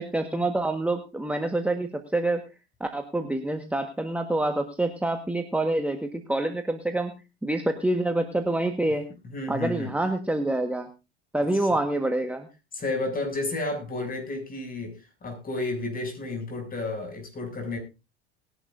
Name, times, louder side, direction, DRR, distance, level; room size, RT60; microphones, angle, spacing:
voice 1, 0.0-2.4 2.8-9.1 9.5-10.9 11.3-12.5, right 2 dB, 5° right, 5 dB, 1.5 m, -27 dB
voice 2, 9.2-9.9 11.5-11.7 12.7-17.8, left 2 dB, 25° left, 3 dB, 7.2 m, -32 dB
20.0 x 11.0 x 2.7 m, 0.29 s
hypercardioid pair, 85°, 32 cm